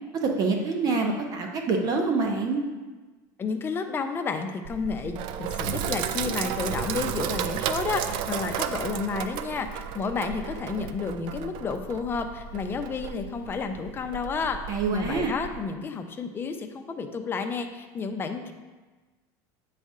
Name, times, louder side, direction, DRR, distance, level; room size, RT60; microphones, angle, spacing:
voice 1, 0.2-2.6 14.7-15.3, right 4 dB, 40° right, 2 dB, 0.9 m, -26 dB
voice 2, 3.4-18.5, left 5 dB, 20° left, 6 dB, 0.6 m, -31 dB
Sink (filling or washing), 4.6-15.6, right 9 dB, 55° right, 0.4 m, -33 dB
8.2 x 4.2 x 3.7 m, 1.3 s
supercardioid pair, 135°, 10 cm